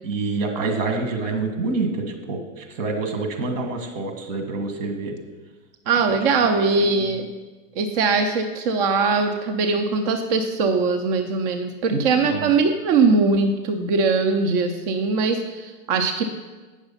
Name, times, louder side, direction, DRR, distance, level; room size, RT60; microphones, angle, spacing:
voice 1, 0.0-5.1 6.0-6.2 6.4-6.6 7.0-7.1 11.9-12.5, right 3 dB, 70° right, 4 dB, 1.7 m, -27 dB
voice 2, 5.9-7.3 7.8-16.3, right 4 dB, 35° right, 5 dB, 0.5 m, -21 dB
8.9 x 6.1 x 5.5 m, 1.3 s
supercardioid pair, 160°, 39 cm